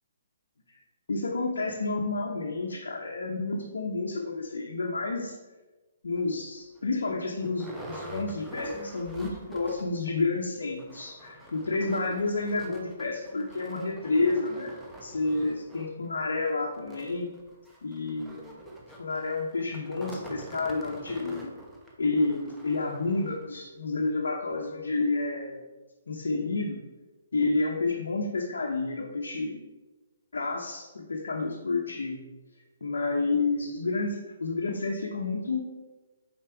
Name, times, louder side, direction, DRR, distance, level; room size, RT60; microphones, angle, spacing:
voice 1, 1.1-5.4 6.0-14.7 15.0-17.3 17.8-18.6 19.0-21.5 22.0-25.6 26.1-26.8 27.3-29.6 30.3-32.3 32.8-35.7, left 3 dB, 80° left, -2 dB, 0.9 m, -30 dB
sound 1, 6.1-6.3 6.8-6.9 7.1-10.0 10.3-10.4 10.7-23.5 24.1-24.2 24.5-24.6, right 1 dB, 5° right, 0.9 m, -45 dB
6.7 x 4.4 x 4.5 m, 1.2 s
hypercardioid pair, 140°, 0 cm